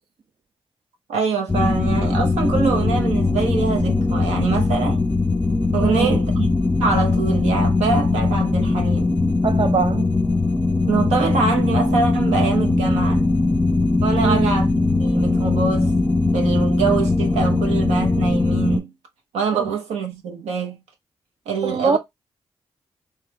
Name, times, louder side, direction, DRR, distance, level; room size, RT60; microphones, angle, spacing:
voice 1, 1.1-5.1 5.7-6.5 6.8-9.1 10.9-13.3 14.0-15.9 16.3-18.9 19.3-20.8 21.5-22.0, right 5 dB, 85° right, 0.7 m, -24 dB
sound 1, 1.5-18.8, left 3 dB, 20° left, 0.6 m, -20 dB
voice 2, 5.8-6.2 9.4-10.1 14.2-14.5 19.5-19.7 21.6-22.0, right 5 dB, 55° right, 0.6 m, -22 dB
3.1 x 2.3 x 3.3 m
supercardioid pair, 40°, 11 cm